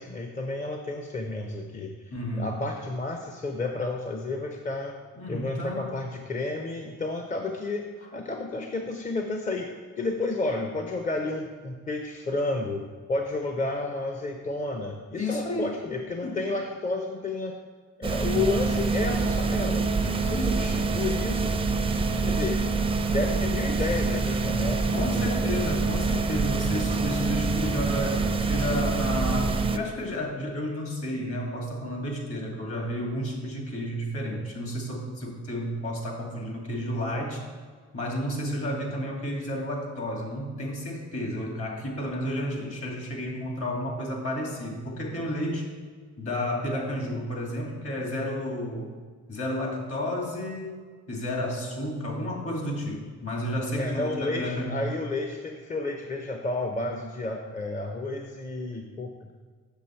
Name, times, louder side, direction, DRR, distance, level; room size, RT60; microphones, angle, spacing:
voice 1, 0.0-1.9 2.4-5.0 5.3-7.9 8.1-9.7 10.0-12.8 13.1-17.6 18.0-21.5 22.2-22.6 23.1-25.7 53.8-59.3, left 2 dB, 25° left, 3 dB, 0.7 m, -31 dB
voice 2, 2.1-2.6 5.1-5.9 15.1-15.8 16.2-16.4 20.3-20.7 24.9-37.4 37.9-45.7 46.2-48.9 49.3-54.8, left 1 dB, 50° left, 0 dB, 2.2 m, -31 dB
sound 1, 18.0-29.8, right 4 dB, 20° right, 0.5 m, -26 dB
7.2 x 6.1 x 4.4 m, 1.5 s
cardioid pair, 90°, 30 cm